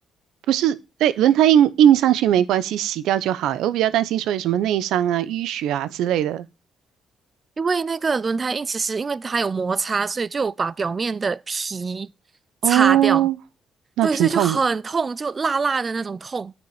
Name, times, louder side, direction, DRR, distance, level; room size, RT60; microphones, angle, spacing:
voice 1, 0.5-6.5 12.6-13.4 14.0-14.6, right 11 dB, 85° right, 0.8 m, -19 dB
voice 2, 7.6-12.1 12.6-13.3 14.0-16.5, right 4 dB, 35° right, 0.5 m, -24 dB
9.3 x 5.3 x 7.2 m
cardioid pair, 90°, 0 cm